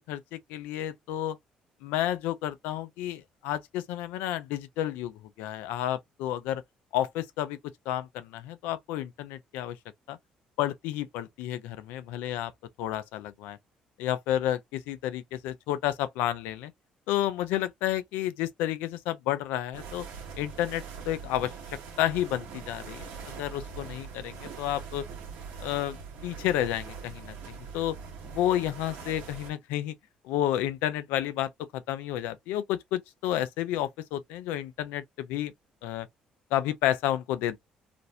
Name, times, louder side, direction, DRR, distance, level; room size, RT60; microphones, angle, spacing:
voice 1, 0.1-1.4 1.8-6.6 6.9-7.6 7.9-9.8 10.1-10.2 10.6-12.5 12.8-13.6 14.0-16.7 17.1-20.1 20.4-21.5 22.0-25.0 25.6-26.0 26.2-28.0 28.2-29.9 30.2-35.5 35.8-36.1 36.5-37.6, left 12 dB, 85° left, 0.4 m, -31 dB
sound 1, 19.7-29.5, right 6 dB, 80° right, 0.8 m, -42 dB
2.5 x 2.0 x 2.7 m
supercardioid pair, 65°, 3 cm